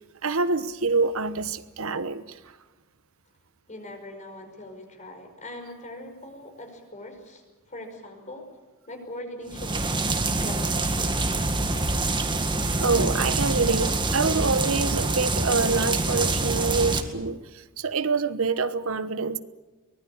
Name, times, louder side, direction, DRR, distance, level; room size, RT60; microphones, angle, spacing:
voice 1, 0.2-2.4 12.8-19.4, right 4 dB, 70° right, 1.1 m, -26 dB
voice 2, 3.7-8.5 8.9-10.0 10.3-11.3, left 1 dB, 35° left, 5.4 m, -41 dB
sound 1, 9.5-17.0, right 2 dB, 25° right, 1.9 m, -25 dB
23.5 x 20.5 x 8.7 m
head